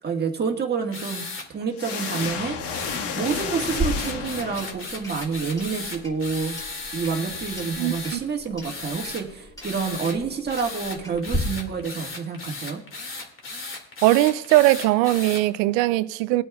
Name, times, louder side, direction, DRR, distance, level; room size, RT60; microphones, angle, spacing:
voice 1, 0.0-1.2 1.5-2.6 3.1-6.6 6.9-12.8, right 5 dB, 20° right, 1.7 m, -28 dB
sound 1, 0.9-1.5 1.9-2.3 2.7-8.2 8.6-9.2 9.6-10.2 10.5-15.4, left 3 dB, 25° left, 2.2 m, -36 dB
sound 2, 1.8-5.1, left 5 dB, 55° left, 1.8 m, -31 dB
Clock, 3.7-11.4, right 1 dB, 5° left, 2.2 m, -36 dB
voice 2, 7.8-8.2 14.0-16.4, right 17 dB, 85° right, 0.7 m, -20 dB
21.0 x 8.4 x 2.4 m
supercardioid pair, 125°, 49 cm